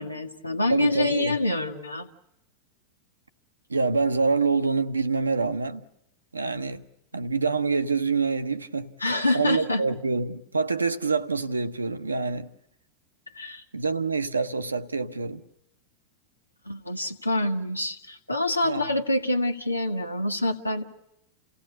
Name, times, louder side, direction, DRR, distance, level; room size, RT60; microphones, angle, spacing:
voice 1, 0.0-2.1 9.0-9.8 13.3-13.6 16.7-20.8, left 2 dB, 85° left, 1.5 m, -26 dB
voice 2, 0.7-1.4 3.7-5.8 6.3-6.8 7.1-8.9 9.3-12.5 13.7-15.4 18.6-18.9, right 4 dB, 80° right, 0.9 m, -26 dB
29.0 x 17.0 x 9.8 m
figure-of-eight pair, 90°, 0 cm